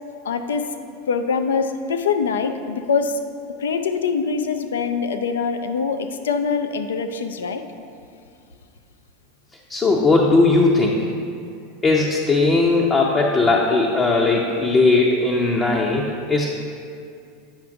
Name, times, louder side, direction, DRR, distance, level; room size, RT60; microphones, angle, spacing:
voice 1, 0.2-0.7 1.1-3.2 3.6-7.6, left 5 dB, 80° left, 7 dB, 0.4 m, -23 dB
voice 2, 9.7-11.0 11.8-16.5, left 3 dB, 25° left, -1 dB, 0.6 m, -18 dB
8.7 x 5.7 x 2.6 m, 2.4 s
hypercardioid pair, 90°, 0 cm